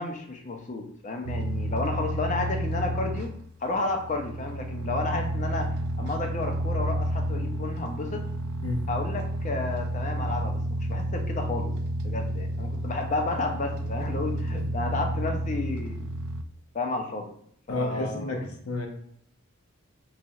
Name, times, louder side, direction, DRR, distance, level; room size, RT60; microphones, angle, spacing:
voice 1, 0.0-3.3 3.6-5.7 6.0-8.2 8.9-11.7 12.0-16.1 16.7-17.3 17.7-18.5, left 3 dB, 35° left, 3 dB, 0.5 m, -32 dB
sound 1, 1.2-16.4, right 1 dB, 85° right, 0.3 m, -31 dB
voice 2, 17.7-18.4 18.7-18.9, left 2 dB, 80° left, 2 dB, 0.7 m, -30 dB
3.9 x 3.2 x 2.4 m, 0.66 s
head